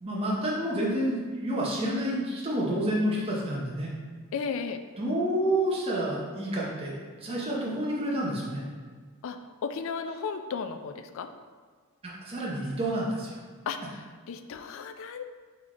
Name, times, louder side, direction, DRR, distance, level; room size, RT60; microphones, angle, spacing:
voice 1, 0.0-3.9 5.0-6.9 7.2-8.6 12.0-13.3, right 1 dB, 25° right, -5 dB, 0.7 m, -29 dB
voice 2, 4.3-4.8 9.2-9.4 9.6-11.3 13.7-15.2, left 5 dB, 60° left, 8 dB, 0.3 m, -34 dB
3.8 x 3.5 x 3.6 m, 1.5 s
head